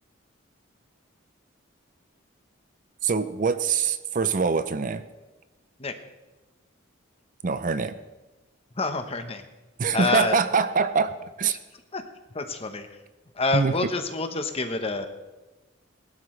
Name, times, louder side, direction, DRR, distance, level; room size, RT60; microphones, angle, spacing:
voice 1, 3.0-5.0 7.4-8.0 9.8-11.6 13.5-13.7, right 5 dB, 40° right, 12 dB, 0.5 m, -24 dB
voice 2, 8.7-9.4 9.9-10.4 11.9-12.0 12.3-13.0 13.3-15.1, left 3 dB, 30° left, 7 dB, 1.0 m, -27 dB
19.5 x 12.5 x 3.3 m, 1.1 s
head